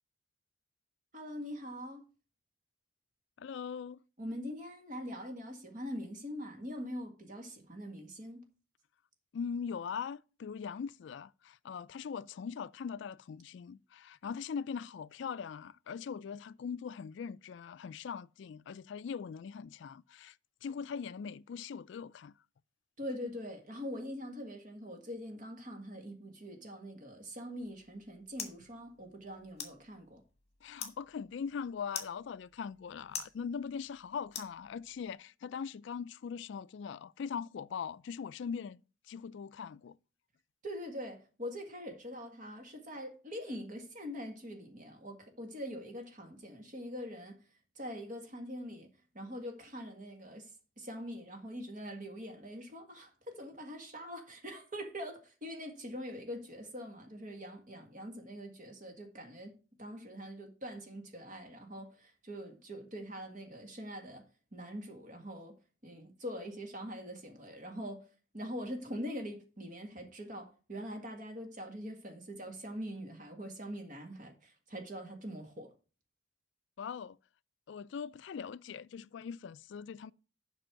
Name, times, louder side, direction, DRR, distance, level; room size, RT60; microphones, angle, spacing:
voice 1, 1.1-2.0 4.2-8.4 23.0-30.2 40.6-47.4 47.8-48.9 49.1-65.6 65.8-68.1 68.3-75.7, equal, 40° right, 1.8 m, -43 dB
voice 2, 3.4-4.0 9.3-20.4 20.6-22.3 30.6-38.8 39.1-40.0 76.8-77.2 77.7-80.1, left 6 dB, 65° left, 0.3 m, -41 dB
sound 1, 27.6-35.1, left 7 dB, 35° left, 1.4 m, -48 dB
7.7 x 5.4 x 6.2 m
head